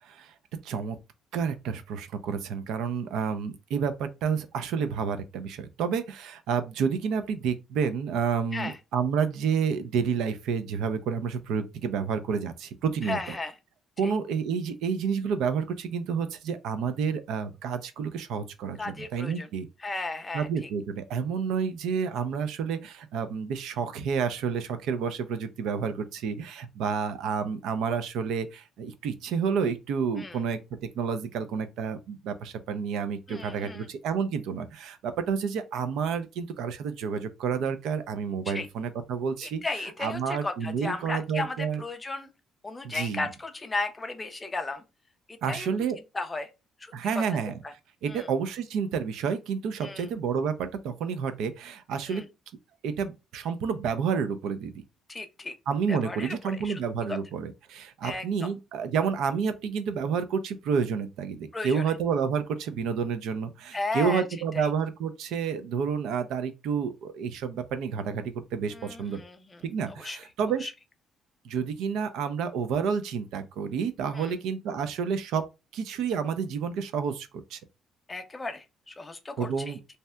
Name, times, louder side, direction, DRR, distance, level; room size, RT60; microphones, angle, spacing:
voice 1, 0.0-0.3 0.6-1.0 1.3-13.3 14.0-19.7 20.3-30.6 31.0-39.6 40.0-41.8 42.8-43.3 45.4-46.0 46.9-47.6 48.0-52.2 52.8-54.8 55.7-69.2 69.6-70.7 71.4-75.4 75.7-77.6 79.4-79.8, right 6 dB, 80° right, 0.4 m, -30 dB
voice 2, 13.0-13.5 14.0-14.1 18.8-19.5 19.8-20.7 30.2-30.4 33.3-33.9 38.5-38.7 39.4-42.3 42.6-44.8 45.3-45.7 46.1-46.5 46.8-47.2 48.1-48.3 49.8-50.1 52.1-52.3 55.1-55.6 55.9-56.4 56.6-56.8 57.1-57.2 58.0-58.5 61.5-61.8 63.7-64.2 64.5-64.7 68.7-70.2 70.6-70.7 74.1-74.3 78.1-79.8, left 3 dB, 15° left, 0.4 m, -35 dB
3.2 x 2.7 x 2.2 m
cardioid pair, 165°, 0 cm